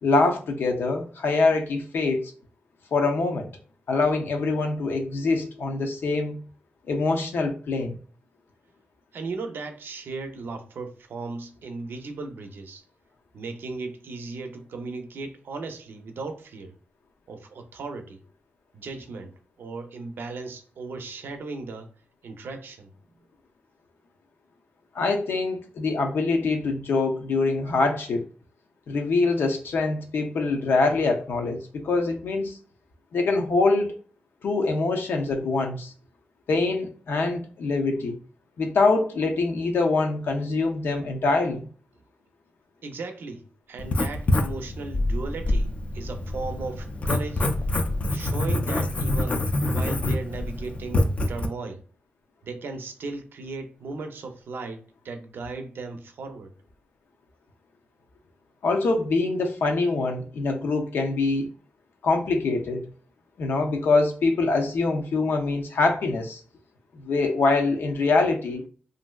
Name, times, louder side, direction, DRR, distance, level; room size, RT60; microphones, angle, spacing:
voice 1, 0.0-2.3 2.9-3.5 3.9-6.4 6.9-8.0 24.9-28.2 28.9-32.6 33.1-33.9 34.4-35.9 36.5-38.2 38.6-41.7 58.6-61.5 62.0-62.8 63.4-66.4 66.9-68.6, left 3 dB, 85° left, 0.6 m, -24 dB
voice 2, 9.1-12.8 13.3-16.8 17.3-18.2 18.7-21.9 22.2-22.9 42.8-47.5 48.1-51.8 52.4-56.5, right 3 dB, 75° right, 0.5 m, -36 dB
Writing, 43.8-51.5, left 1 dB, 40° left, 0.4 m, -26 dB
3.2 x 2.5 x 2.3 m
wide cardioid pair, 140°, 4 cm